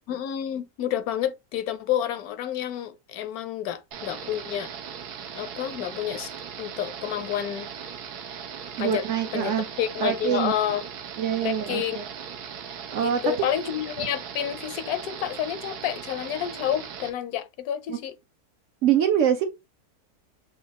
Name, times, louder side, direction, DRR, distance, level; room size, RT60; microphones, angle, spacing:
voice 1, 0.1-4.7 5.4-6.3 6.6-7.9 8.8-9.1 9.3-10.8 11.4-12.0 13.0-18.1, left 10 dB, 75° left, 1.0 m, -29 dB
sound 1, 3.9-17.1, right 7 dB, 85° right, 1.3 m, -39 dB
voice 2, 8.8-9.7 10.0-10.5 11.2-12.0 12.9-13.2 14.0-14.1 17.9-18.0 18.8-19.5, right 9 dB, 65° right, 0.8 m, -24 dB
6.3 x 2.3 x 2.8 m
omnidirectional pair, 1.7 m